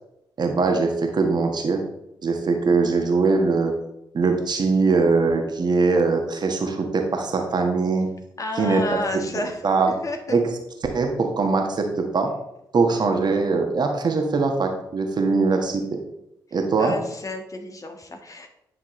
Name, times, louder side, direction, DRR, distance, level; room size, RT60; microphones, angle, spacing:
voice 1, 0.4-1.8 2.2-3.7 4.1-8.1 8.6-8.8 9.1-9.2 9.6-9.9 10.3-10.4 10.9-12.3 12.7-16.0 16.5-16.9, right 4 dB, 45° right, 4 dB, 1.4 m, -21 dB
voice 2, 8.4-9.6 10.0-10.2 16.8-18.5, left 2 dB, 35° left, 4 dB, 1.4 m, -31 dB
9.9 x 5.8 x 3.2 m, 0.83 s
hypercardioid pair, 40°, 10 cm